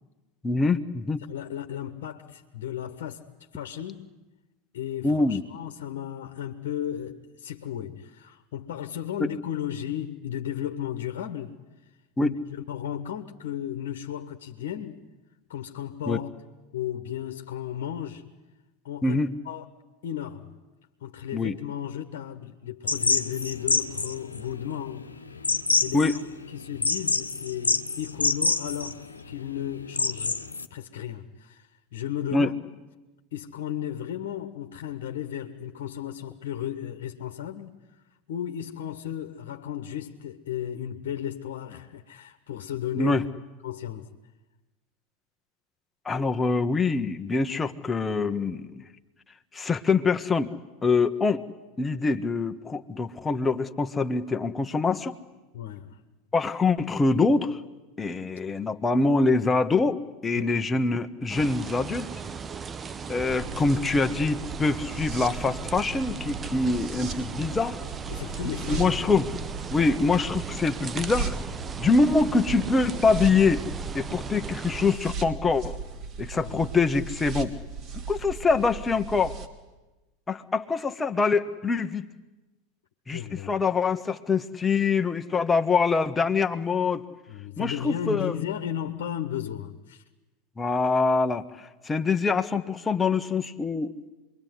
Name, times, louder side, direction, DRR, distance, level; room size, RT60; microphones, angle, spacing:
voice 1, 0.4-1.2 5.0-5.4 9.2-9.3 12.2-12.3 16.1-16.2 19.0-19.3 21.3-21.5 25.9-26.2 32.3-32.5 43.0-43.2 46.0-48.8 49.5-50.5 50.8-51.4 51.8-55.1 56.3-57.6 58.0-62.1 63.1-67.8 68.6-69.3 69.7-71.4 71.8-73.6 73.9-75.8 76.2-77.5 77.9-79.3 80.3-82.1 83.1-87.0 87.6-88.4 90.6-93.9, left 4 dB, 15° left, 1.5 m, -24 dB
voice 2, 1.3-3.2 3.5-4.1 4.7-11.6 12.2-15.0 15.5-16.3 16.7-18.3 18.8-19.6 20.0-20.6 21.0-25.1 25.8-26.2 26.5-32.6 33.3-37.8 38.3-43.2 43.6-44.1 55.5-56.0 60.3-60.5 66.6-66.7 68.1-68.9 76.3-76.6 83.1-83.6 87.3-90.0, left 10 dB, 65° left, 1.5 m, -34 dB
sound 1, 22.9-30.7, left 3 dB, 90° left, 1.1 m, -27 dB
sound 2, 61.3-75.0, right 6 dB, 25° right, 0.9 m, -37 dB
sound 3, 63.3-79.5, right 4 dB, 40° right, 3.2 m, -37 dB
26.5 x 22.5 x 9.6 m
figure-of-eight pair, 85°, 0 cm